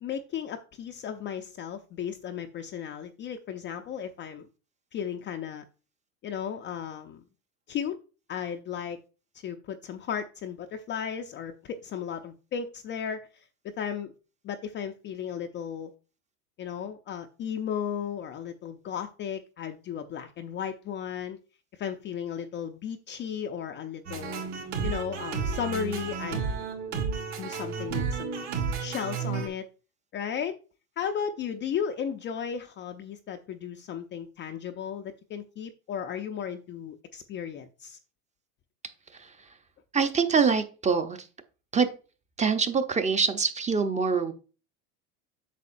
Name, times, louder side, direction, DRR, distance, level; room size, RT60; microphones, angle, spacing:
voice 1, 0.0-4.5 4.9-5.6 6.2-7.2 7.7-8.0 8.3-9.0 9.3-13.5 13.8-14.1 14.4-15.9 16.6-21.4 21.7-24.4 24.8-26.5 27.4-28.5 28.8-29.6 30.1-30.6 31.0-38.0, left 8 dB, 25° left, 6 dB, 0.4 m, -35 dB
sound 1, 24.1-29.5, right 5 dB, 70° right, 2.8 m, -32 dB
voice 2, 39.9-41.2 41.7-41.9 42.4-44.3, right 5 dB, 15° right, 9 dB, 0.7 m, -24 dB
8.3 x 6.3 x 2.5 m, 0.34 s
hypercardioid pair, 105°, 46 cm